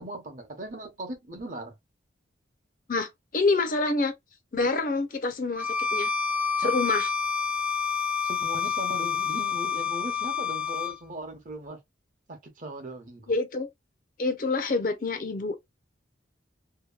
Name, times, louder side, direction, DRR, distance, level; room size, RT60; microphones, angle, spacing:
voice 1, 0.0-1.7 6.6-6.8 8.2-11.8 12.3-13.3, right 1 dB, 45° right, 0.8 m, -39 dB
voice 2, 2.9-4.1 4.5-6.1 6.6-7.1 13.3-13.7 14.2-15.6, left 3 dB, 45° left, 0.5 m, -27 dB
Bowed string instrument, 5.6-11.0, left 6 dB, 10° right, 0.6 m, -28 dB
2.7 x 2.2 x 2.3 m
head